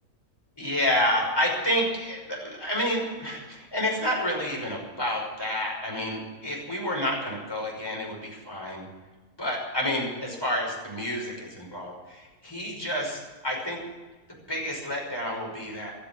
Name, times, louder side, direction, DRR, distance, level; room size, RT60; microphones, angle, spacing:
voice 1, 0.6-8.9 9.4-13.8 14.5-15.9, left 1 dB, 15° left, -1 dB, 5.8 m, -29 dB
16.0 x 13.5 x 6.3 m, 1.3 s
omnidirectional pair, 1.6 m